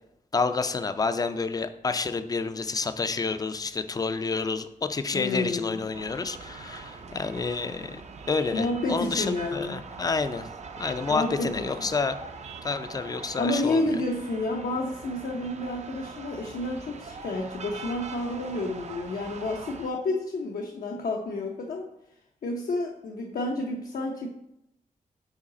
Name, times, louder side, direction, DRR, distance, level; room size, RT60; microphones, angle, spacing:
voice 1, 0.3-8.0 8.3-10.5 10.8-12.2 12.6-13.9, left 4 dB, 25° left, 11 dB, 0.4 m, -29 dB
voice 2, 5.1-5.8 8.5-9.8 11.1-11.9 13.4-21.8 22.4-24.3, left 2 dB, 75° left, 0 dB, 0.6 m, -30 dB
sound 1, 5.9-19.9, right 4 dB, 50° right, 0.5 m, -42 dB
5.0 x 4.7 x 4.1 m, 0.84 s
wide cardioid pair, 115°, 15 cm